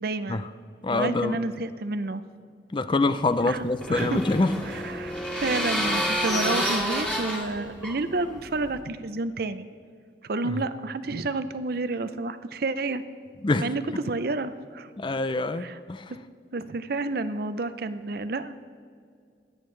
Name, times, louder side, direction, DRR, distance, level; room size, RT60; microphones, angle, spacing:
voice 1, 0.0-0.5 0.9-2.2 3.4-4.2 4.7-9.7 10.2-13.0 13.6-14.9 15.6-15.8 16.5-18.5, right 3 dB, 55° right, 12 dB, 0.6 m, -30 dB
voice 2, 0.8-1.4 2.7-4.5 10.4-10.6 13.4-13.7 15.0-16.1, left 2 dB, 25° left, 12 dB, 0.4 m, -25 dB
sound 1, 3.3-8.8, equal, 5° left, 1.9 m, -29 dB
24.5 x 8.8 x 3.3 m, 2.2 s
head